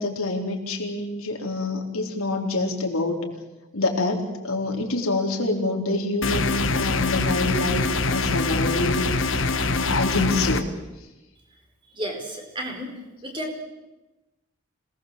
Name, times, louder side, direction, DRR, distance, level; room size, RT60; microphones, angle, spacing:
voice 1, 0.0-3.3 3.7-10.7, left 2 dB, 85° left, 1 dB, 4.0 m, -26 dB
sound 1, 6.2-10.6, left 3 dB, 65° left, 1.5 m, -24 dB
voice 2, 11.9-12.9 13.2-13.6, equal, 25° right, 3 dB, 4.4 m, -32 dB
27.0 x 19.0 x 7.6 m, 1.1 s
head